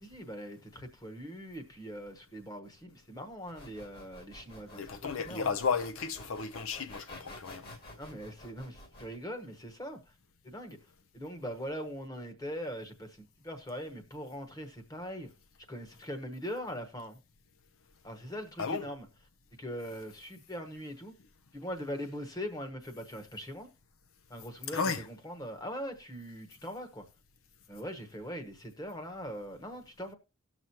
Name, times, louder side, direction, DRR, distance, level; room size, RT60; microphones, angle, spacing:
voice 1, 0.0-4.9 5.2-5.5 8.0-10.1 10.4-10.8 11.1-15.3 15.7-17.2 18.0-19.1 19.6-21.1 21.5-23.7 24.3-27.0 27.7-30.1, equal, 15° left, 1.1 m, -41 dB
sound 1, 3.5-9.2, left 1 dB, 45° left, 1.9 m, -50 dB
voice 2, 4.8-7.7 18.6-18.9 24.7-25.0, left 5 dB, 70° left, 0.6 m, -33 dB
18.0 x 6.1 x 2.8 m
head